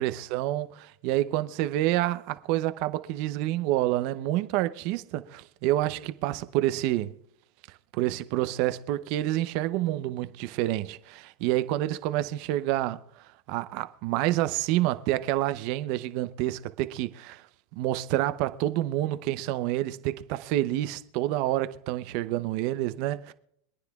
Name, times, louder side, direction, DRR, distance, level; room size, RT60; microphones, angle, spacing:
voice 1, 0.0-7.1 7.9-13.0 13.5-17.4 17.8-23.3, right 15 dB, 60° right, 0.7 m, -28 dB
25.5 x 9.7 x 2.4 m
hypercardioid pair, 110°, 0 cm